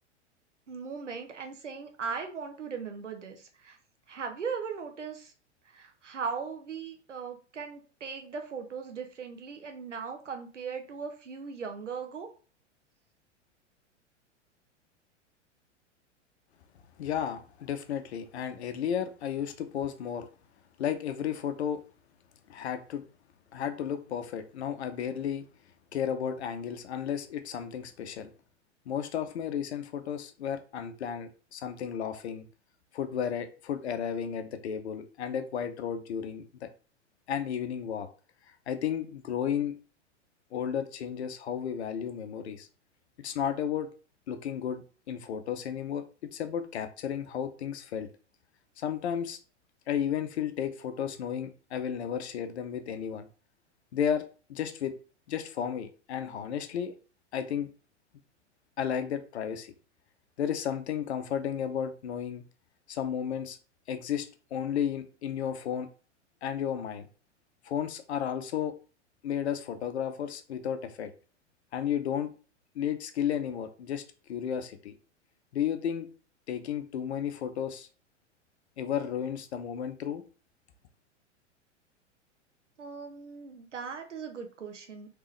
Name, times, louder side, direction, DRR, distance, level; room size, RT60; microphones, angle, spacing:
voice 1, 0.7-3.8 4.1-5.3 5.6-12.3 82.8-85.2, right 5 dB, 80° right, 5 dB, 0.9 m, -38 dB
voice 2, 17.0-20.3 20.8-21.8 22.5-23.0 23.5-25.4 25.9-28.3 28.9-32.5 32.9-36.7 37.3-38.1 38.7-39.7 40.5-42.7 43.2-43.9 44.3-48.1 48.8-49.4 49.9-53.3 53.9-54.2 54.5-54.9 55.3-56.9 57.3-57.7 58.8-59.7 60.4-62.4 62.9-63.6 63.9-64.3 64.5-65.9 66.4-67.1 67.6-68.7 69.2-71.1 71.7-72.3 72.7-74.0 74.3-74.9 75.5-76.1 76.5-77.9 78.8-80.2, left 8 dB, 65° left, 9 dB, 0.7 m, -33 dB
3.6 x 3.3 x 3.1 m, 0.37 s
figure-of-eight pair, 95°, 36 cm